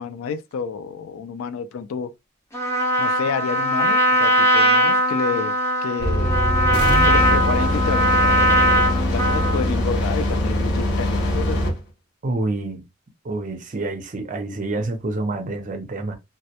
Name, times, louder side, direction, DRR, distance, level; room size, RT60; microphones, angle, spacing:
voice 1, 0.0-2.1 3.0-6.3 7.0-8.8 9.1-11.6, left 5 dB, 75° left, 0.4 m, -29 dB
Trumpet, 2.5-9.7, equal, 15° left, 0.8 m, -20 dB
sound 1, 6.0-11.8, equal, 55° left, 0.9 m, -22 dB
voice 2, 12.2-12.8 13.2-16.1, right 2 dB, 40° right, 0.5 m, -27 dB
2.2 x 2.0 x 2.7 m
head